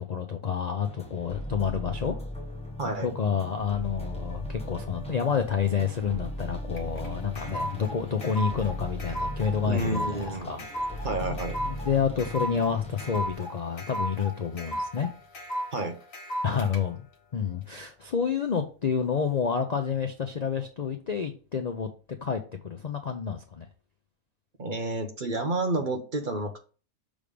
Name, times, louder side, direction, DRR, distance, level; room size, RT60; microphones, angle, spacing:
voice 1, 0.0-2.2 2.8-15.1 16.4-17.1 17.3-21.9 22.2-23.7, left 6 dB, 50° left, 6 dB, 0.5 m, -29 dB
sound 1, 0.8-13.3, left 1 dB, 5° left, 1.2 m, -38 dB
sound 2, 6.7-16.8, equal, 75° left, 1.8 m, -35 dB
voice 2, 9.6-10.6 11.0-11.6 15.7-16.0 24.6-26.6, right 2 dB, 40° right, 4 dB, 1.1 m, -30 dB
6.4 x 3.5 x 5.0 m, 0.37 s
omnidirectional pair, 1.4 m